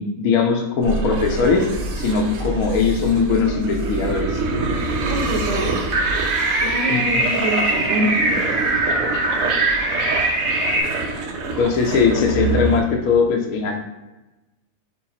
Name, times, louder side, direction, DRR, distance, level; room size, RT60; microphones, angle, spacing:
voice 1, 0.0-1.7 2.0-4.4 6.9-7.3 11.6-13.8, left 5 dB, 70° left, 1 dB, 1.0 m, -20 dB
sound 1, 0.8-12.8, right 3 dB, 65° right, 1.0 m, -26 dB
voice 2, 5.1-5.7 6.6-8.2, equal, 45° right, -5 dB, 0.6 m, -24 dB
sound 2, 5.9-10.8, right 2 dB, 90° right, 0.4 m, -21 dB
5.4 x 2.0 x 4.1 m, 1.1 s
omnidirectional pair, 1.8 m